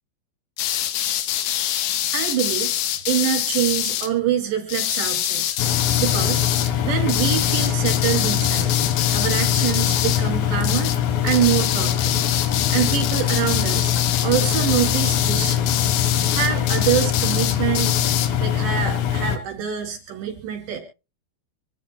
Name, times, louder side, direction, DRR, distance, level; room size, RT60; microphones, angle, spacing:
sound 1, 0.6-4.1 4.7-6.7 7.1-10.3 10.6-11.0 11.3-18.3, left 11 dB, 90° left, 3.4 m, -25 dB
voice 1, 2.1-2.7 3.1-5.5 6.0-6.5 6.8-8.8 9.1-10.9 11.2-12.2 12.7-13.9 14.2-15.7 16.3-17.9 18.4-20.8, right 10 dB, 75° right, 2 dB, 4.9 m, -25 dB
Engine, 5.6-19.4, left 10 dB, 65° left, 2.8 m, -23 dB
25.5 x 13.0 x 2.3 m, 0.31 s
omnidirectional pair, 5.0 m